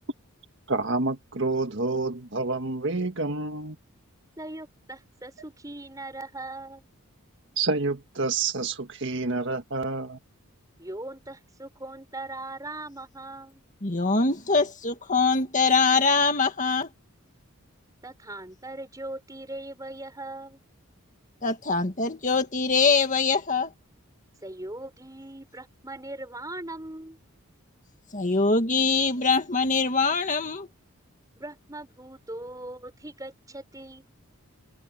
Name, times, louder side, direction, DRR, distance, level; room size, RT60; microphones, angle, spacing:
voice 1, 0.7-3.8 7.6-10.2, right 3 dB, 55° right, 1.7 m, -28 dB
voice 2, 4.4-6.8 10.8-13.6 18.0-20.6 24.4-27.2 31.4-34.0, right 2 dB, 15° right, 6.3 m, -40 dB
voice 3, 13.8-16.9 21.4-23.7 28.1-30.7, left 4 dB, 35° left, 1.9 m, -23 dB
open air
head